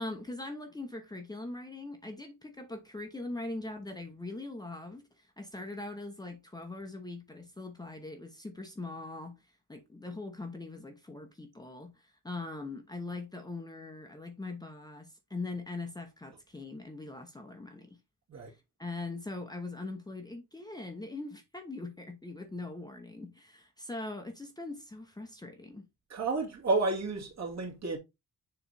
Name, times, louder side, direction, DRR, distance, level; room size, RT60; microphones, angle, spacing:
voice 1, 0.0-9.4 9.7-18.0 18.5-25.9, left 2 dB, 10° left, 0.9 m, -41 dB
voice 2, 26.1-28.0, right 3 dB, 50° right, 2.4 m, -31 dB
7.1 x 3.3 x 4.2 m
cardioid pair, 130°, 34 cm